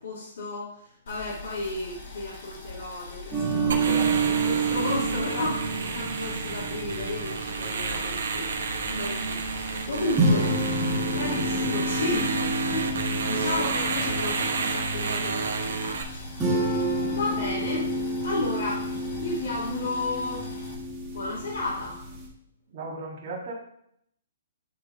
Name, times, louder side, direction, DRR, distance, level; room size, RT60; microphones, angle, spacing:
voice 1, 0.0-10.6 11.1-16.8 17.1-17.9 18.2-18.9 19.2-20.5 21.1-22.0, left 2 dB, 80° left, -8 dB, 2.4 m, -33 dB
Boiling, 1.1-20.7, left 3 dB, 35° left, 1.3 m, -44 dB
sound 1, 3.3-22.3, right 2 dB, 10° right, 1.4 m, -30 dB
voice 2, 3.7-4.5 10.3-10.5 22.7-23.5, right 3 dB, 30° right, -6 dB, 1.8 m, -37 dB
sound 2, 3.7-16.0, right 5 dB, 70° right, 1.1 m, -31 dB
9.6 x 3.6 x 3.8 m, 0.73 s
hypercardioid pair, 170°, 0 cm